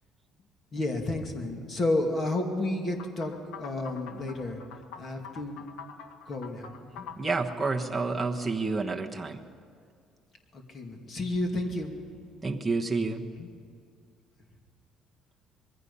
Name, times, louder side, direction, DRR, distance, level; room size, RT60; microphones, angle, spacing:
voice 1, 0.7-4.6 5.0-5.6 6.3-7.1 10.5-11.9 13.4-13.5, left 2 dB, 35° left, 3 dB, 2.5 m, -31 dB
sound 1, 3.0-8.1, left 7 dB, 85° left, 1.7 m, -45 dB
voice 2, 7.2-9.4 12.4-13.2, right 3 dB, 10° right, 1 dB, 1.2 m, -29 dB
25.5 x 21.5 x 5.6 m, 2.3 s
cardioid pair, 155°, 0 cm